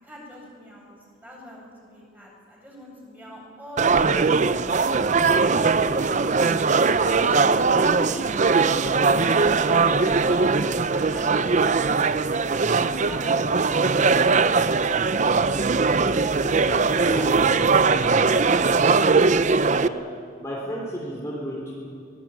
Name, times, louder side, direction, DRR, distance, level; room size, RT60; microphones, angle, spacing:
voice 1, 0.0-4.8 5.3-6.8 7.1-12.5 12.8-15.8 16.4-18.7, equal, 10° right, -3 dB, 7.9 m, -41 dB
sound 1, 3.8-19.9, right 4 dB, 40° right, 0.6 m, -20 dB
voice 2, 4.7-5.4 5.9-6.3 17.0-17.3 19.7-20.0 20.4-21.7, equal, 15° left, -4 dB, 3.5 m, -34 dB
23.5 x 19.0 x 9.0 m, 2.2 s
head